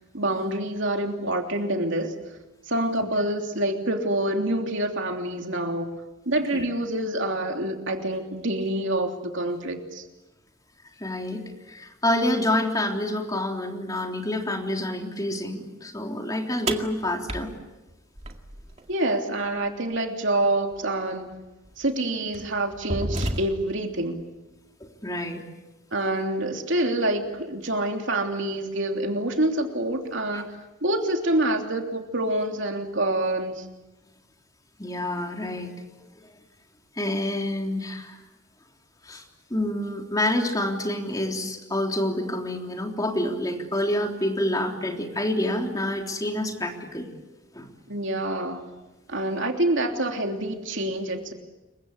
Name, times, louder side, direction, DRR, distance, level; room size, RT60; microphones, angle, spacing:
voice 1, 0.1-2.1 2.7-5.9 6.2-10.0 18.9-21.3 21.8-24.2 25.9-30.4 30.8-33.6 47.9-48.7 49.1-51.3, right 1 dB, 60° right, 3 dB, 3.2 m, -26 dB
voice 2, 11.0-17.5 25.0-25.4 30.3-30.4 34.8-35.7 37.0-38.2 39.0-39.2 39.5-47.0 47.5-47.7, left 1 dB, 15° left, 2 dB, 3.5 m, -27 dB
sound 1, 16.7-18.8 20.7-20.8 21.7-21.9 22.3-23.8, right 1 dB, 30° right, 2.1 m, -31 dB
28.0 x 23.5 x 8.4 m, 1.0 s
head